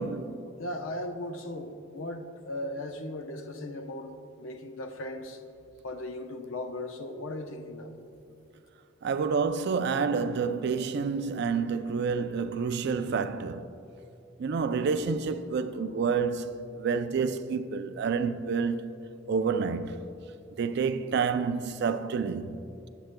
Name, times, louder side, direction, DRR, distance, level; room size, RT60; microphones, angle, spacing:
voice 1, 0.0-0.5 9.0-13.6 14.4-16.5 16.8-18.9 19.3-20.0 20.6-22.5, right 5 dB, 60° right, 0.4 m, -28 dB
voice 2, 0.6-5.4 5.8-7.9, left 1 dB, 90° left, 0.7 m, -37 dB
19.0 x 7.7 x 2.2 m
head